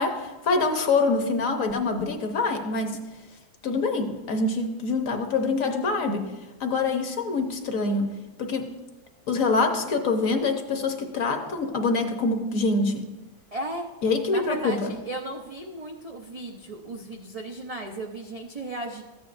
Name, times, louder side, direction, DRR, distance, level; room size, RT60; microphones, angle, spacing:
voice 1, 0.0-3.0 3.6-6.3 6.6-8.1 8.4-8.7 9.3-13.1 14.0-14.9, left 3 dB, 60° left, 5 dB, 1.2 m, -25 dB
voice 2, 13.5-13.9 14.3-19.0, right 1 dB, 65° right, 0 dB, 0.3 m, -35 dB
14.0 x 9.0 x 2.5 m, 1.1 s
omnidirectional pair, 1.7 m